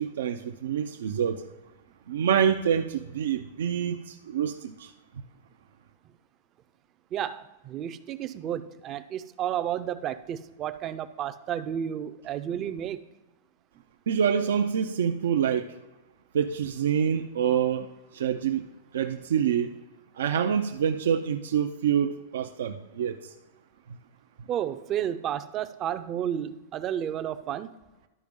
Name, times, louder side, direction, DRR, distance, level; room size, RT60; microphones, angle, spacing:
voice 1, 0.0-1.4 2.1-4.9 14.1-15.7 16.3-18.6 18.9-19.7 20.2-23.2, right 8 dB, 85° right, 5 dB, 0.5 m, -26 dB
voice 2, 7.1-13.0 24.5-27.7, right 10 dB, 30° right, 12 dB, 0.5 m, -32 dB
12.0 x 5.1 x 3.6 m, 1.1 s
supercardioid pair, 150°, 0 cm